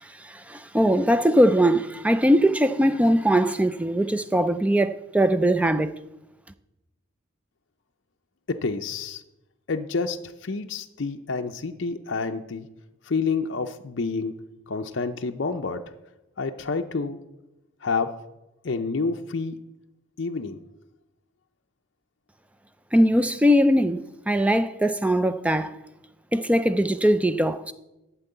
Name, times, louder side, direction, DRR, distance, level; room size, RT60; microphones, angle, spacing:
voice 1, 0.0-5.9 22.9-25.8 26.3-27.7, equal, 5° right, 0.3 m, -21 dB
voice 2, 8.5-9.2 9.7-12.7 13.1-14.3 14.7-15.8 16.4-17.2 17.8-18.1 18.6-19.6 20.2-20.6, left 4 dB, 60° left, 0.5 m, -28 dB
12.0 x 4.6 x 7.9 m
head